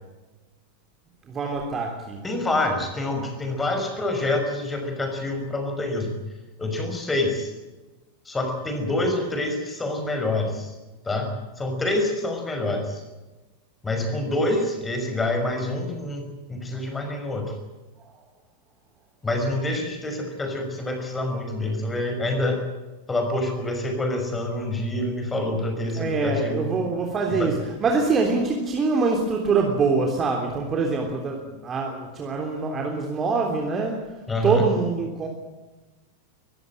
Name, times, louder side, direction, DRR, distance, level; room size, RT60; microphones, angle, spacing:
voice 1, 1.3-2.2 25.9-34.0 34.4-35.3, right 4 dB, 25° right, 1 dB, 3.4 m, -24 dB
voice 2, 2.2-6.1 6.6-7.5 8.3-10.7 11.0-13.0 13.8-16.2 16.5-17.5 19.2-22.6 23.1-26.7 27.3-27.5 34.3-34.6, left 2 dB, 10° left, 5 dB, 5.9 m, -26 dB
22.5 x 16.0 x 9.1 m, 1.1 s
figure-of-eight pair, 90°, 0 cm